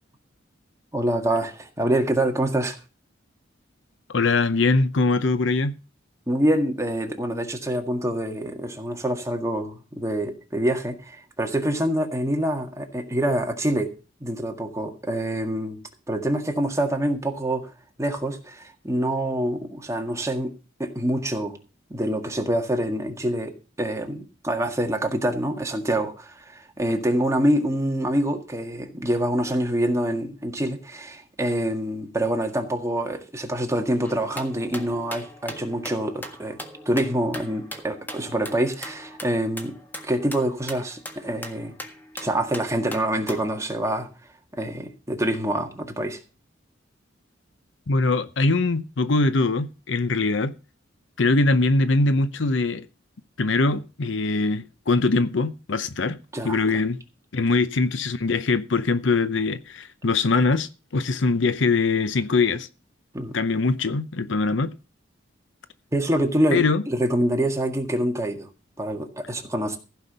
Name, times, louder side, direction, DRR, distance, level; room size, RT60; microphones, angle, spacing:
voice 1, 0.9-2.8 6.3-13.9 14.2-15.8 16.1-17.7 18.0-21.6 21.9-36.6 36.9-39.7 40.0-41.8 42.2-44.1 44.5-46.2 56.3-56.6 63.1-63.3 65.9-68.5 68.8-69.8, right 1 dB, 15° right, 1.8 m, -26 dB
voice 2, 4.1-5.8 47.9-50.5 51.2-52.8 53.4-56.2 56.4-57.0 57.3-62.7 63.3-64.7 66.5-66.8, left 3 dB, 70° left, 0.8 m, -22 dB
sound 1, 34.0-43.6, left 1 dB, 10° left, 1.6 m, -40 dB
15.0 x 5.8 x 6.7 m
head